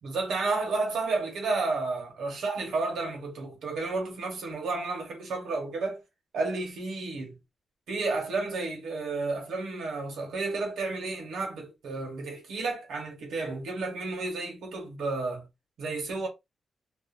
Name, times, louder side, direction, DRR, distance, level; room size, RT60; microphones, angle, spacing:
voice 1, 0.0-6.0 6.3-7.4 7.9-15.5 15.8-16.3, right 3 dB, 90° right, 1.1 m, -31 dB
2.4 x 2.4 x 2.5 m
cardioid pair, 80°, 0 cm